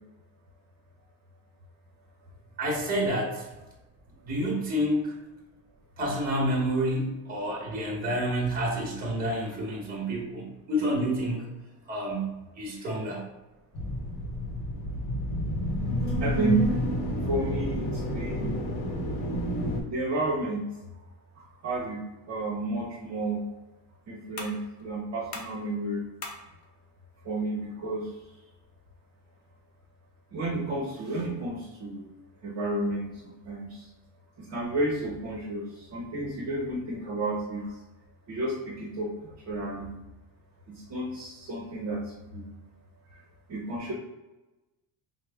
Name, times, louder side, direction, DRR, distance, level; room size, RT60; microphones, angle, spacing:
voice 1, 2.6-3.5 4.2-5.1 6.0-11.5 11.9-12.3 12.6-13.2, equal, 20° right, -2 dB, 1.1 m, -29 dB
sound 1, 13.7-19.8, equal, 60° left, 0.9 m, -30 dB
voice 2, 16.2-16.6 17.3-18.5 19.9-20.6 21.4-22.0 22.3-23.4 24.1-26.0 27.2-28.1 30.3-32.1 32.4-33.1 33.4-33.9 34.4-37.7 38.3-40.0 40.7-42.6 43.5-43.9, right 2 dB, 40° right, -5 dB, 0.8 m, -31 dB
sound 2, 22.8-29.8, left 3 dB, 40° left, 0.6 m, -48 dB
4.7 x 2.1 x 3.4 m, 1.0 s
cardioid pair, 170°, 41 cm